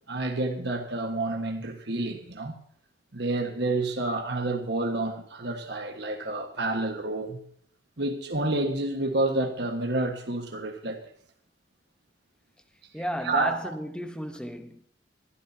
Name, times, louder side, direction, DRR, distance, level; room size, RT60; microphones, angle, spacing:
voice 1, 0.1-2.6 3.1-7.4 8.0-11.0 13.2-13.6, right 2 dB, 60° right, 1.5 m, -29 dB
voice 2, 12.9-14.8, equal, 5° left, 1.0 m, -33 dB
21.5 x 13.0 x 2.8 m
head